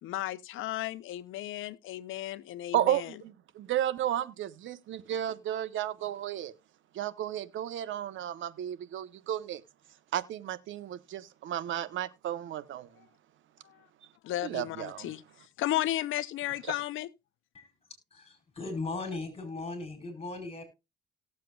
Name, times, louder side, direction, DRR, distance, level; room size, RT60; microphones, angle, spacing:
voice 1, 0.0-3.2 13.6-13.8 14.2-15.2 15.6-17.1, left 14 dB, 85° left, 0.7 m, -34 dB
voice 2, 2.7-6.5 6.9-9.6 10.1-12.9 14.4-15.1 16.7-16.8, right 11 dB, 75° right, 1.0 m, -33 dB
voice 3, 18.1-20.6, left 3 dB, 30° left, 4.6 m, -38 dB
18.0 x 7.5 x 2.3 m
cardioid pair, 90°, 20 cm